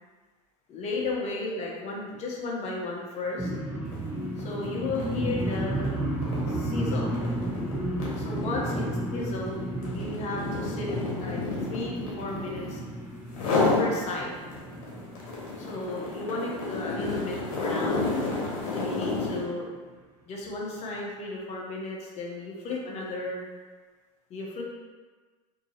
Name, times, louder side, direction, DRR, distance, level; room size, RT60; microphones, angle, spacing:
voice 1, 0.7-3.5 4.4-5.9 6.5-7.2 8.2-8.9 9.1-11.4 11.7-12.8 13.5-14.3 15.7-18.1 18.7-19.7 20.3-23.4 24.3-24.6, left 2 dB, 40° left, -2 dB, 0.8 m, -34 dB
sound 1, 3.4-17.2 17.6-18.0 18.3-18.7, right 1 dB, 15° right, 1.1 m, -33 dB
sound 2, 3.9-4.1 4.4-12.8 13.3-13.9 14.3-19.5, left 3 dB, 70° left, 1.0 m, -30 dB
2.7 x 2.6 x 2.7 m, 1.4 s
supercardioid pair, 105°, 17 cm